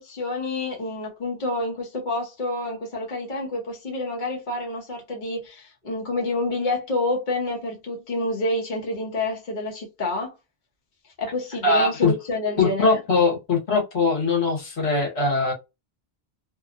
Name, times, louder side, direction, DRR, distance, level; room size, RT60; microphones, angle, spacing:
voice 1, 0.0-10.3 11.2-13.0, left 2 dB, 50° left, 1.1 m, -28 dB
voice 2, 11.6-12.1 12.6-15.5, left 3 dB, 85° left, 1.3 m, -21 dB
2.8 x 2.3 x 2.5 m
omnidirectional pair, 1.1 m